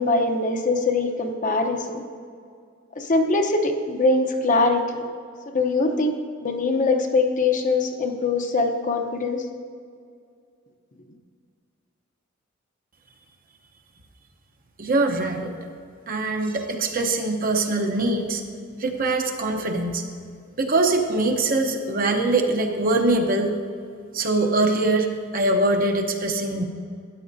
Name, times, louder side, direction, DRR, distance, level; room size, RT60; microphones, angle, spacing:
voice 1, 0.0-2.0 3.0-5.0 5.5-9.4, left 3 dB, 40° left, 4 dB, 0.8 m, -22 dB
voice 2, 14.8-15.5 16.1-18.4 18.8-20.0 20.6-23.5 24.1-25.1 25.3-26.7, right 2 dB, 45° right, 4 dB, 0.8 m, -22 dB
13.0 x 9.7 x 2.7 m, 2.3 s
head